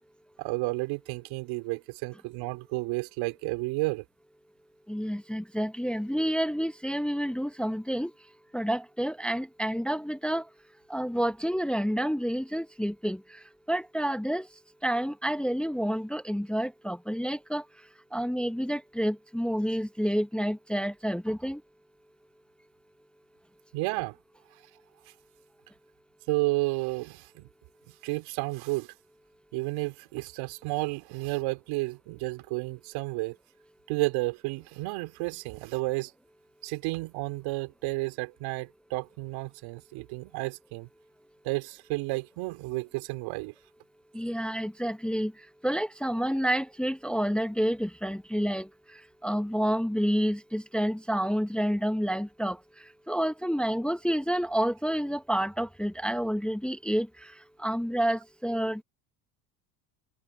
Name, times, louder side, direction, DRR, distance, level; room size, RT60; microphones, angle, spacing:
voice 1, 0.4-4.0 23.7-24.2 26.3-27.5 28.0-28.9 29.5-33.4 33.9-36.1 36.6-40.9 41.4-43.5, right 23 dB, 70° right, 4.0 m, -32 dB
voice 2, 4.9-8.1 8.5-10.4 10.9-13.2 13.7-14.5 14.8-17.6 18.1-21.6 44.1-45.3 45.6-48.7 49.2-52.6 53.1-57.1 57.6-58.8, equal, ahead, 0.9 m, -29 dB
supercardioid pair, 100°, 48 cm